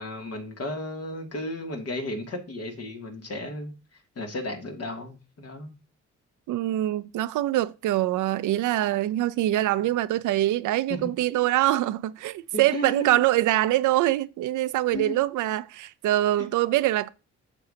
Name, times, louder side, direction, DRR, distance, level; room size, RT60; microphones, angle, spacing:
voice 1, 0.0-3.7 4.2-5.7 10.9-11.1 12.5-13.2 14.9-15.2, left 1 dB, 55° left, 2.5 m, -34 dB
voice 2, 6.5-17.1, right 15 dB, 80° right, 0.6 m, -24 dB
8.8 x 7.1 x 2.8 m
cardioid pair, 90°, 30 cm